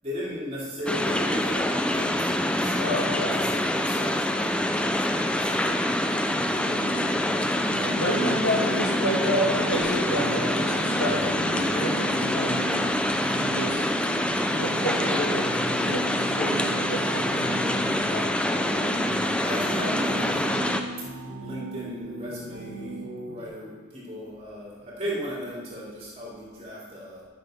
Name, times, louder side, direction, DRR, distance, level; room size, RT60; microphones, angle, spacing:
voice 1, 0.0-3.0 3.4-6.0 7.7-7.9 18.9-21.1 21.4-27.2, equal, 30° right, -6 dB, 3.2 m, -36 dB
sound 1, 0.9-20.8, left 1 dB, 5° left, 0.4 m, -26 dB
voice 2, 2.8-3.4 7.9-12.6 13.2-13.9 14.5-18.3, equal, 65° left, -3 dB, 2.4 m, -30 dB
sound 2, 6.3-23.5, right 2 dB, 70° right, 1.3 m, -37 dB
12.0 x 6.6 x 5.1 m, 1.4 s
head